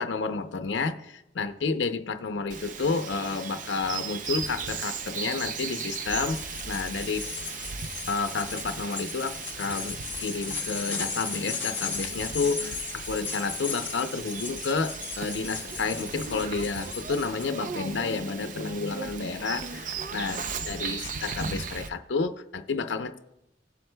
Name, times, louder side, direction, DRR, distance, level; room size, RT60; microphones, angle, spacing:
voice 1, 0.0-7.3 7.6-7.7 8.1-23.2, left 4 dB, 90° left, 0.6 m, -30 dB
Bird vocalization bird call bird song, 2.5-21.9, right 5 dB, 45° right, 0.5 m, -37 dB
sound 1, 6.3-17.4, left 5 dB, 10° left, 1.8 m, -37 dB
17.0 x 7.7 x 2.2 m
head